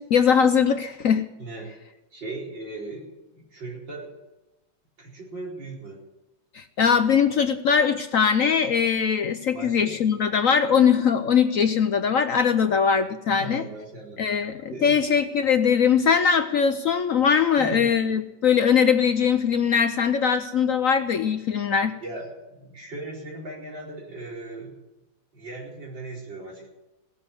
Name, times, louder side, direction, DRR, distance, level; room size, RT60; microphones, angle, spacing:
voice 1, 0.0-1.3 6.5-13.6 14.2-21.9, left 7 dB, 65° left, 9 dB, 0.8 m, -21 dB
voice 2, 1.4-1.7 2.1-4.2 5.0-6.0 9.5-10.0 13.4-14.2 14.7-15.0 17.5-17.9 22.0-24.8 25.3-26.7, right 2 dB, 70° right, -4 dB, 5.3 m, -38 dB
17.5 x 7.8 x 9.7 m, 1.0 s
omnidirectional pair, 2.0 m